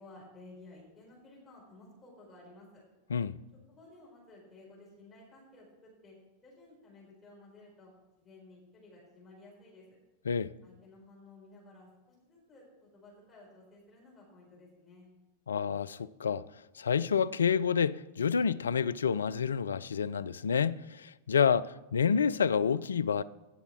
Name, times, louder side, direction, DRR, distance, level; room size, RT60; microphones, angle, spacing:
voice 1, 0.0-2.8 3.7-6.2 6.4-7.9 8.2-9.9 10.6-12.7 12.9-15.1, left 2 dB, 20° left, 4.4 m, -55 dB
voice 2, 15.5-16.4 16.8-23.2, left 6 dB, 70° left, 0.3 m, -28 dB
17.0 x 6.8 x 4.4 m
figure-of-eight pair, 90°, 0 cm